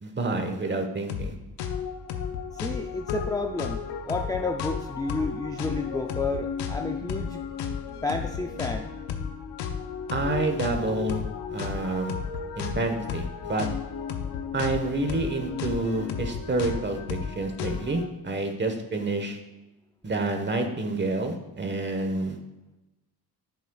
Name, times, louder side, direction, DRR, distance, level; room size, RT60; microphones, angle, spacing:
voice 1, 0.0-1.3 10.1-11.2 11.5-12.1 12.6-13.7 14.5-19.4 20.0-22.4, right 2 dB, 25° right, 5 dB, 1.2 m, -28 dB
sound 1, 1.1-1.3 1.6-18.1, left 7 dB, 85° left, 0.8 m, -33 dB
voice 2, 2.5-7.4 8.0-8.9, left 2 dB, 10° left, 3 dB, 0.5 m, -31 dB
10.0 x 8.2 x 2.4 m, 1.0 s
cardioid pair, 80°, 39 cm